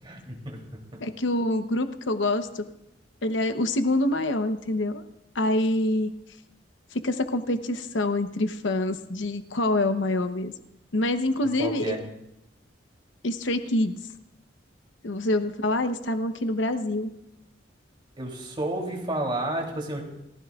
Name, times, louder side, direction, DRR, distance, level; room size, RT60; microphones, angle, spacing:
voice 1, 0.0-0.6 0.9-1.0 11.6-12.0 18.2-20.0, right 1 dB, 25° right, 0 dB, 3.1 m, -31 dB
voice 2, 1.0-2.6 3.2-5.0 5.3-6.1 6.9-10.5 10.9-12.0 13.2-13.9 15.0-17.1, left 1 dB, 75° left, 8 dB, 0.9 m, -26 dB
29.5 x 15.5 x 2.4 m, 0.87 s
head